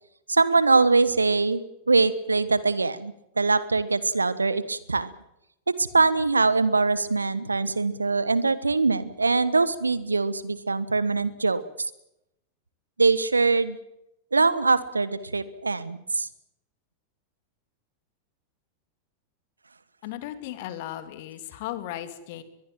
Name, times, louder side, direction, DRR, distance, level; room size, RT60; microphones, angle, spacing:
voice 1, 0.3-5.1 5.7-11.6 13.0-13.8 14.3-16.3, right 3 dB, 80° right, 17 dB, 1.3 m, -23 dB
voice 2, 20.0-22.4, left 13 dB, 50° left, 10 dB, 2.8 m, -36 dB
22.5 x 22.0 x 7.6 m, 0.84 s
figure-of-eight pair, 90°, 0 cm